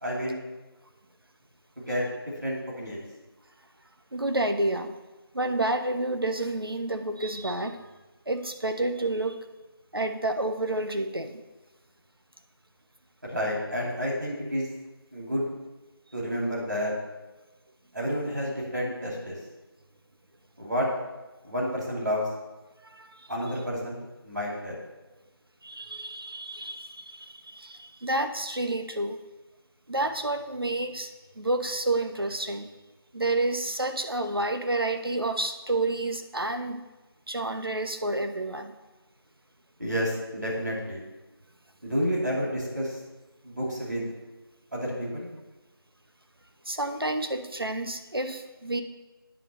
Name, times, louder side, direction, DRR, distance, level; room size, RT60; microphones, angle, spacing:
voice 1, 0.0-0.4 1.8-2.0 2.4-3.0 13.3-14.7 15.1-15.4 16.1-16.9 17.9-19.4 20.6-20.9 21.4-22.3 23.3-24.8 39.8-41.0 41.8-43.0 43.4-44.1 44.7-45.3, equal, 50° right, -4 dB, 2.6 m, -30 dB
voice 2, 4.1-4.9 5.3-7.9 8.3-9.4 9.9-11.4 22.8-23.3 25.6-29.2 29.9-32.7 33.1-36.8 37.3-38.7 46.7-48.8, right 2 dB, 65° right, 7 dB, 0.8 m, -29 dB
9.1 x 3.7 x 6.6 m, 1.1 s
figure-of-eight pair, 175°, 13 cm